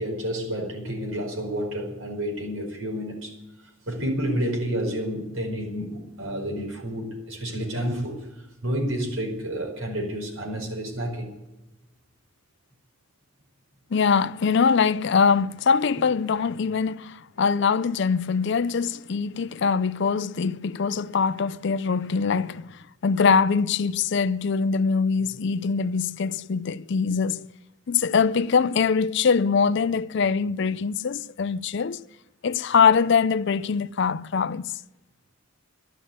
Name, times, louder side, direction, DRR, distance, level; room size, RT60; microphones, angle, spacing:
voice 1, 0.0-3.4 3.9-8.1 8.6-11.3, equal, 75° right, 4.9 m, -30 dB
voice 2, 13.9-27.5 27.9-32.0 32.4-34.7, left 5 dB, 55° left, 0.4 m, -23 dB
12.0 x 11.0 x 9.4 m
head